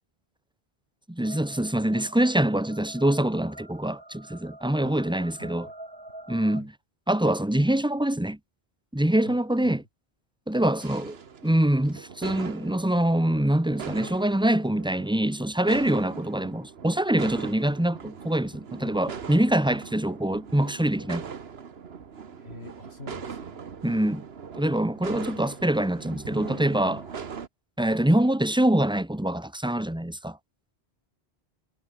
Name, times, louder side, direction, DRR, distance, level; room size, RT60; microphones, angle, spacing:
voice 1, 1.1-5.7 6.3-6.7 7.1-8.4 8.9-9.8 10.5-11.2 11.4-21.2 23.8-24.2 24.5-27.1 27.8-30.4, right 1 dB, 5° right, 1.2 m, -24 dB
sound 1, 1.2-6.6, right 1 dB, 20° right, 2.7 m, -46 dB
voice 2, 5.4-5.7 6.5-6.7 9.2-9.8 22.4-23.6 25.1-25.6, left 1 dB, 75° left, 7.4 m, -46 dB
sound 2, 10.8-27.5, right 6 dB, 70° right, 1.5 m, -41 dB
omnidirectional pair, 1.1 m